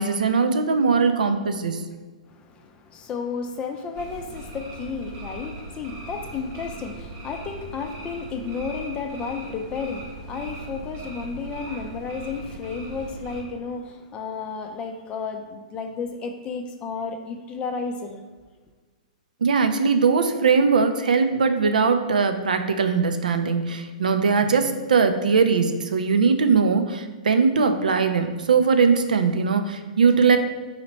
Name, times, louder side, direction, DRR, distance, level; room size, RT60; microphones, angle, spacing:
voice 1, 0.0-1.8 19.4-30.4, right 5 dB, 85° right, 7 dB, 0.4 m, -20 dB
voice 2, 2.3-18.3, left 5 dB, 25° left, 5 dB, 0.4 m, -32 dB
sound 1, 4.0-13.4, right 2 dB, 40° right, 0.8 m, -39 dB
4.2 x 2.9 x 4.3 m, 1.4 s
hypercardioid pair, 130°, 4 cm